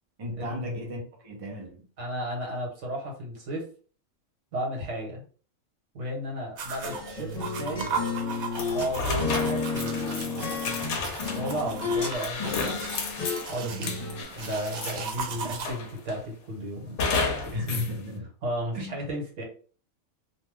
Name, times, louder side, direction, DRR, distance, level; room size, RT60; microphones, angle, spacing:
voice 1, 0.2-1.9 13.7-13.9 15.3-15.6 17.0-18.3 18.7-19.0, left 1 dB, 40° right, 0.5 m, -35 dB
voice 2, 2.0-3.7 4.5-5.2 5.9-7.9 8.7-12.8 13.5-17.0 17.4-17.5 18.4-19.4, right 1 dB, 60° right, 1.4 m, -34 dB
sound 1, 6.6-15.7, right 5 dB, 90° right, 1.1 m, -37 dB
sound 2, 6.8-8.9 9.2-12.1 12.4-14.2, left 4 dB, 40° left, 0.9 m, -32 dB
sound 3, 8.5-15.2 15.6-16.2 17.0-17.9, left 4 dB, 65° left, 0.9 m, -32 dB
2.6 x 2.2 x 3.3 m
omnidirectional pair, 1.4 m